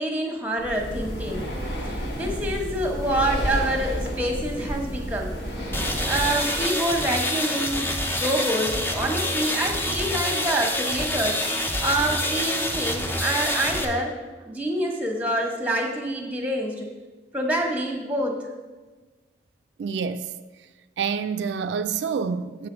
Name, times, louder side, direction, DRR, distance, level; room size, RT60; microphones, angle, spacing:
voice 1, 0.0-1.5 1.8-5.4 6.1-11.4 11.8-14.1 14.5-16.9 17.3-18.4, right 1 dB, 10° right, 1.0 m, -26 dB
Breathing, 0.6-6.7, equal, 75° left, 1.4 m, -31 dB
sound 1, 5.7-13.8, left 1 dB, 10° left, 0.5 m, -27 dB
voice 2, 19.8-20.3 21.0-22.7, right 6 dB, 75° right, 0.3 m, -27 dB
7.3 x 4.8 x 6.1 m
head